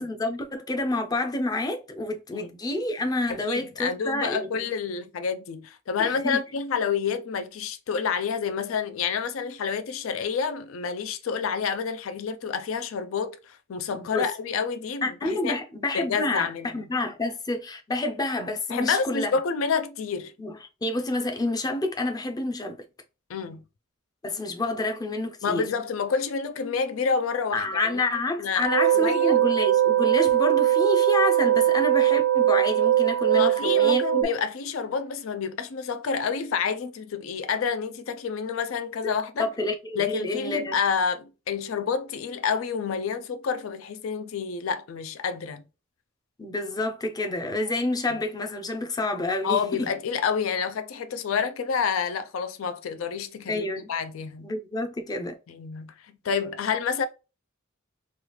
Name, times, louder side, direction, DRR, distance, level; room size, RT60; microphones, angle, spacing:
voice 1, 0.0-4.7 6.0-6.4 13.9-14.3 15.0-19.3 20.4-22.8 24.2-25.6 27.5-34.3 39.0-39.1 39.4-40.8 46.4-49.9 53.5-53.9 54.4-55.4, left 2 dB, 20° left, 0.5 m, -28 dB
voice 2, 3.3-15.6 15.9-16.9 18.7-20.3 23.3-23.6 25.4-28.0 28.4-28.7 28.9-29.4 33.3-39.5 40.0-45.6 49.4-54.5 55.5-57.1, left 6 dB, 80° left, 0.4 m, -29 dB
sound 1, 28.6-34.2, right 12 dB, 90° right, 0.3 m, -21 dB
3.2 x 2.3 x 3.0 m
head